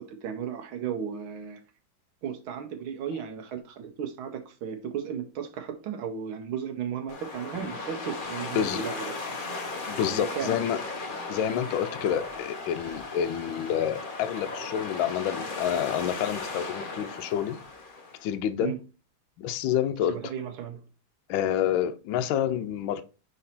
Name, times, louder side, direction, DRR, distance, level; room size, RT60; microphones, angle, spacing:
voice 1, 0.0-1.6 2.2-9.2 10.1-10.6 18.6-18.8 20.1-20.8, right 8 dB, 75° right, 1.6 m, -35 dB
sound 1, 7.1-18.3, left 3 dB, 60° left, 0.5 m, -36 dB
voice 2, 8.5-8.9 9.9-10.8 11.3-17.6 18.2-18.7 19.4-20.3 21.3-23.0, left 9 dB, 75° left, 1.3 m, -28 dB
5.4 x 4.1 x 4.2 m
omnidirectional pair, 2.3 m